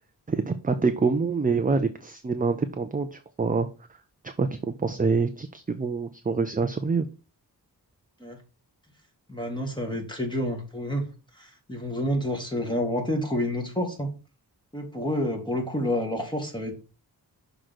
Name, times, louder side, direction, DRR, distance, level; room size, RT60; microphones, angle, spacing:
voice 1, 0.3-3.7 4.2-7.1, right 4 dB, 20° right, 8 dB, 0.5 m, -26 dB
voice 2, 9.3-11.1 11.3-14.1 14.7-16.7, equal, 10° left, 1 dB, 1.8 m, -29 dB
6.3 x 3.9 x 6.1 m, 0.32 s
wide cardioid pair, 135°, 39 cm